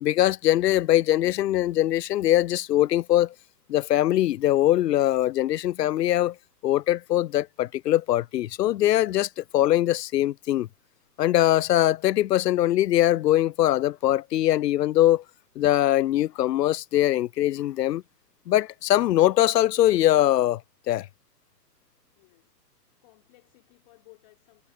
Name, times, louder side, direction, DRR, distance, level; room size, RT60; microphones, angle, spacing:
voice 1, 0.0-3.3 3.7-6.3 6.6-10.7 11.2-15.2 15.6-18.0 18.5-20.6 20.9-21.1, left 13 dB, 90° left, 0.6 m, -22 dB
voice 2, 22.1-24.7, left 20 dB, 25° left, 4.0 m, -58 dB
hypercardioid pair, 170°, 48 cm